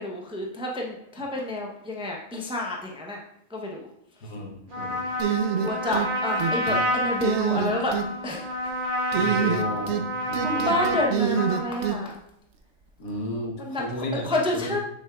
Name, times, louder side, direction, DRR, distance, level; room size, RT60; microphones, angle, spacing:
voice 1, 0.0-3.2 3.5-3.9 4.2-4.3 5.6-8.8 9.1-9.4 10.4-12.2 13.6-14.8, left 1 dB, 5° right, -1 dB, 0.5 m, -30 dB
voice 2, 4.2-5.1 9.1-10.9 13.0-14.2 14.5-14.8, left 1 dB, 90° left, 0 dB, 1.5 m, -33 dB
Trumpet, 4.7-11.9, equal, 40° right, 1.6 m, -29 dB
sound 1, 5.2-6.1 6.4-6.8 7.2-8.1 9.1-10.1 10.3-12.0, right 8 dB, 65° right, 0.9 m, -26 dB
7.0 x 6.1 x 2.3 m, 0.73 s
omnidirectional pair, 1.4 m